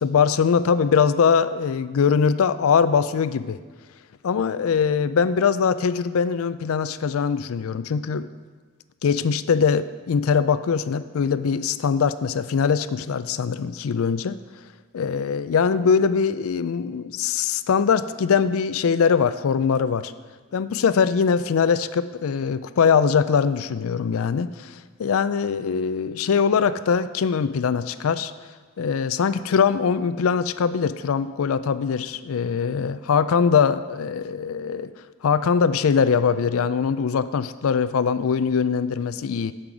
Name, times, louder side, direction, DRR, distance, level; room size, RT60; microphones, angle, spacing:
voice 1, 0.0-3.6 4.2-8.3 9.0-14.4 14.9-20.1 20.5-28.3 28.8-34.9 35.2-39.5, left 6 dB, 80° left, 14 dB, 0.4 m, -22 dB
8.9 x 7.5 x 4.8 m, 1.4 s
head